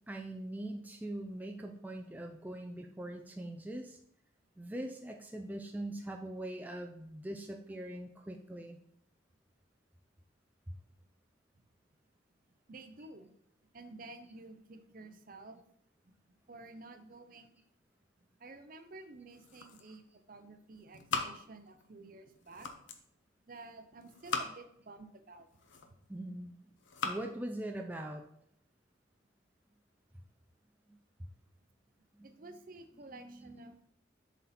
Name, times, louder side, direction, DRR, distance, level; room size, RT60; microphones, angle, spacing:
voice 1, 0.1-4.0 4.6-8.8 26.1-26.5 27.0-28.3 30.9-31.0 32.1-32.3 33.1-33.7, right 1 dB, 10° right, 3 dB, 0.4 m, -42 dB
voice 2, 12.7-13.3 13.7-15.6 16.0-16.1 16.5-17.6 18.4-20.0 20.3-22.7 23.5-25.5 32.2-33.8, right 2 dB, 45° right, 8 dB, 0.6 m, -51 dB
sound 1, 19.1-20.1 20.4-21.9 22.3-23.1 23.9-24.8 25.4-26.2 26.7-27.3, left 4 dB, 85° left, 0.8 m, -40 dB
7.2 x 4.1 x 4.2 m, 0.69 s
head